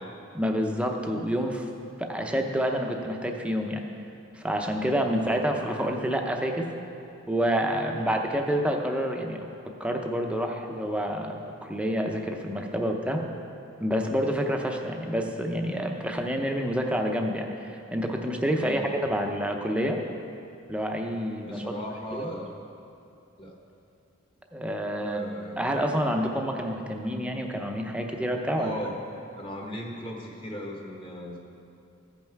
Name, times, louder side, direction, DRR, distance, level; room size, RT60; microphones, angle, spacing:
voice 1, 0.3-1.6 2.0-3.8 4.3-6.7 7.3-9.5 9.8-13.2 13.8-20.0 20.7-21.6 22.1-22.3 24.5-25.2 25.6-28.7, equal, 5° right, 2 dB, 0.7 m, -28 dB
voice 2, 7.9-8.2 18.6-18.9 21.4-22.5 23.4-23.6 25.0-25.8 28.6-31.4, equal, 25° left, 0 dB, 1.2 m, -38 dB
14.5 x 5.6 x 4.6 m, 2.6 s
head